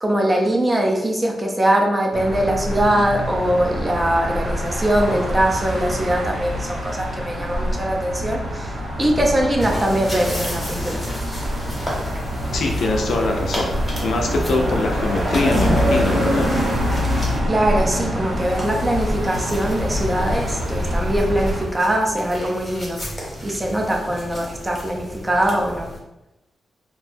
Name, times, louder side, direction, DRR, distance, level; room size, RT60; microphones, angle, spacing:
voice 1, 0.0-8.7 9.0-11.0 11.3-11.4 17.5-23.0 23.4-25.9, right 1 dB, 20° right, 1 dB, 0.5 m, -22 dB
sound 1, 2.1-21.6, equal, 70° right, 1.2 m, -25 dB
sound 2, 9.6-17.4 18.4-26.0, equal, 15° left, 1.0 m, -33 dB
voice 2, 12.5-13.7 14.0-16.5, left 2 dB, 75° left, 2 dB, 0.4 m, -23 dB
2.5 x 2.2 x 3.3 m, 0.96 s
cardioid pair, 105°, 0 cm